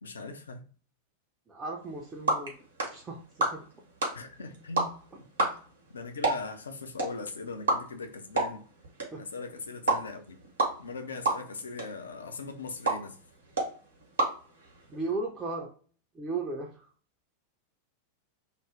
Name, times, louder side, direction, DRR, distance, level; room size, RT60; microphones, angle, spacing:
voice 1, 0.0-0.7 4.1-4.9 5.4-5.5 5.9-8.6 9.2-10.4 10.8-13.2, left 4 dB, 70° left, 0.4 m, -40 dB
voice 2, 1.5-2.5 2.8-3.2 3.5-3.6 9.1-9.2 14.9-15.7 16.1-16.7, right 3 dB, 15° right, 0.5 m, -35 dB
sound 1, 1.8-15.1, right 2 dB, 65° right, 0.9 m, -33 dB
2.4 x 2.0 x 3.1 m
figure-of-eight pair, 90°, 0 cm